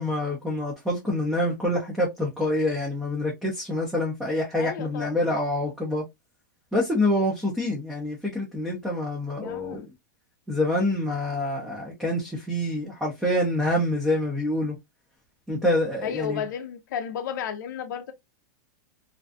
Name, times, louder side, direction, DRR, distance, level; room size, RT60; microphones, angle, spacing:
voice 1, 0.0-6.0 6.7-9.9 10.5-14.8 15.5-16.4, left 1 dB, 5° right, 0.4 m, -26 dB
voice 2, 4.6-5.2 9.4-9.9 16.0-18.1, left 8 dB, 70° left, 0.4 m, -33 dB
2.5 x 2.2 x 2.4 m
supercardioid pair, 165°, 10 cm